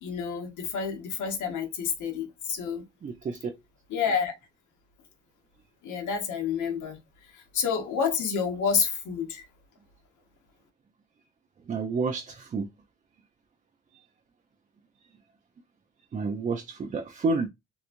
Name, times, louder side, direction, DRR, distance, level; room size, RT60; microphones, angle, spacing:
voice 1, 0.0-2.8 3.9-4.3 5.8-7.0 7.3-9.4, left 6 dB, 80° left, 1.0 m, -29 dB
voice 2, 3.0-3.5 11.6-12.7 13.9-14.0 16.1-17.5, right 4 dB, 25° right, 0.3 m, -30 dB
3.0 x 2.3 x 2.5 m
cardioid pair, 90°, 30 cm